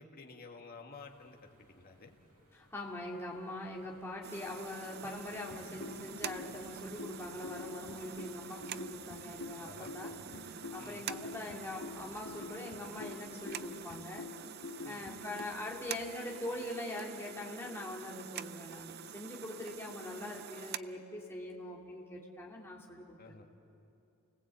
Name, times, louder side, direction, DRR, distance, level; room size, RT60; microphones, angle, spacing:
voice 1, 0.0-2.2 9.6-9.9 10.8-11.1 14.8-15.1 23.2-23.4, left 3 dB, 45° left, 3 dB, 2.0 m, -52 dB
sound 1, 1.0-13.9, right 1 dB, 75° right, 5.8 m, -62 dB
voice 2, 2.5-14.2 14.8-23.4, left 1 dB, 10° left, -3 dB, 2.9 m, -43 dB
sound 2, 4.2-20.8, right 9 dB, 45° right, 0.5 m, -47 dB
sound 3, 5.5-15.4, left 4 dB, 80° left, 1.9 m, -47 dB
29.0 x 19.5 x 8.4 m, 2.7 s
head